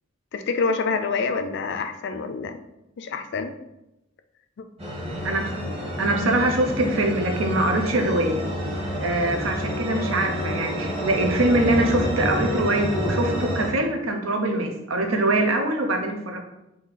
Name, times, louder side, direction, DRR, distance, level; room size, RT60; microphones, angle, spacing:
voice 1, 0.3-2.6 3.0-3.5 4.6-4.7, left 4 dB, 55° left, 8 dB, 0.4 m, -27 dB
sound 1, 4.8-13.7, equal, 30° right, 1.0 m, -28 dB
voice 2, 6.0-8.4 9.0-16.4, right 1 dB, 90° right, 3 dB, 0.8 m, -23 dB
3.8 x 2.7 x 4.0 m, 0.89 s
head